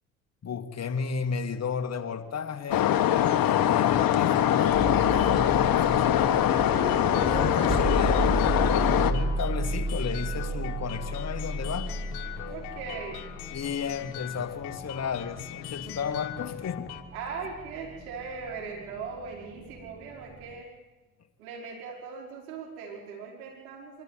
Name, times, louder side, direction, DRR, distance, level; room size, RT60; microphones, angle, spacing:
voice 1, 0.4-6.5 7.2-11.9 13.5-16.9, left 6 dB, 35° left, 6 dB, 2.4 m, -33 dB
sound 1, 2.7-9.1, left 11 dB, 50° left, 1.7 m, -23 dB
sound 2, 4.7-20.6, right 2 dB, 10° right, 1.7 m, -34 dB
sound 3, 6.3-17.0, left 13 dB, 70° left, 1.7 m, -41 dB
voice 2, 12.5-13.3 17.1-20.7 21.4-24.0, right 5 dB, 80° right, -1 dB, 5.5 m, -39 dB
24.5 x 13.5 x 9.3 m, 1.2 s
hypercardioid pair, 65°, 42 cm